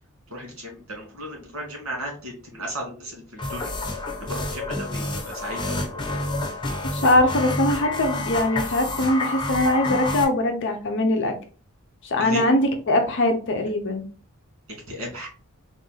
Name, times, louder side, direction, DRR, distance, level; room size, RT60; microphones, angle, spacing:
voice 1, 0.3-3.7 4.2-6.2 12.2-12.4 14.7-15.3, equal, 85° right, 0 dB, 2.1 m, -35 dB
sound 1, 3.4-10.2, left 2 dB, 20° left, 0.8 m, -29 dB
voice 2, 6.9-11.3 12.0-14.1, left 1 dB, 60° left, 3 dB, 0.6 m, -22 dB
3.7 x 2.6 x 3.9 m, 0.39 s
head